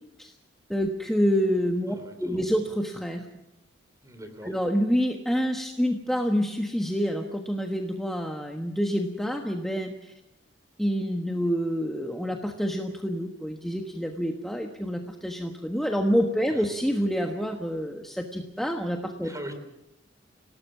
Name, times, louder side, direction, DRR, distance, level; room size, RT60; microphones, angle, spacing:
voice 1, 0.7-3.3 4.4-10.1 10.8-19.3, equal, ahead, 2 dB, 1.3 m, -27 dB
voice 2, 1.9-2.5 4.0-4.6 16.5-16.6 19.2-19.5, right 1 dB, 20° right, 8 dB, 3.4 m, -41 dB
26.5 x 18.5 x 6.0 m, 0.88 s
head